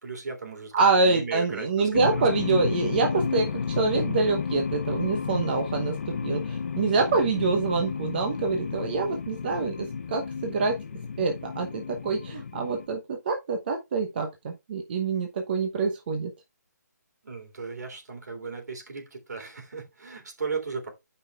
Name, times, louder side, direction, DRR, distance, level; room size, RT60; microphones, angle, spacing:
voice 1, 0.0-2.5 17.2-20.9, right 5 dB, 65° right, 3.4 m, -36 dB
voice 2, 0.7-10.8 11.2-16.3, right 4 dB, 30° right, 0.9 m, -26 dB
sound 1, 1.9-12.9, left 6 dB, 45° left, 0.8 m, -32 dB
13.0 x 5.5 x 2.4 m
figure-of-eight pair, 160°, 10 cm